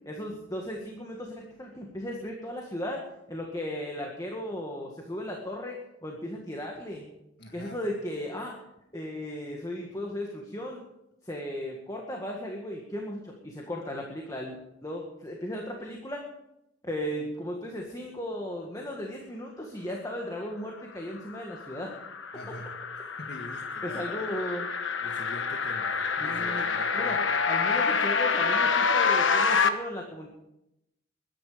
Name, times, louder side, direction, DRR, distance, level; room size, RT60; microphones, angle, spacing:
voice 1, 0.1-3.0 3.3-7.1 7.5-8.6 8.9-10.8 11.2-16.2 16.8-22.0 23.8-24.7 26.2-26.7 26.9-27.2 27.5-30.3, left 1 dB, 20° left, 0 dB, 1.8 m, -36 dB
voice 2, 7.4-7.8 22.3-24.3 25.0-27.3, left 1 dB, 60° left, 2 dB, 1.7 m, -45 dB
sound 1, 21.3-29.7, left 5 dB, 85° left, 1.3 m, -27 dB
21.5 x 11.0 x 5.1 m, 0.86 s
head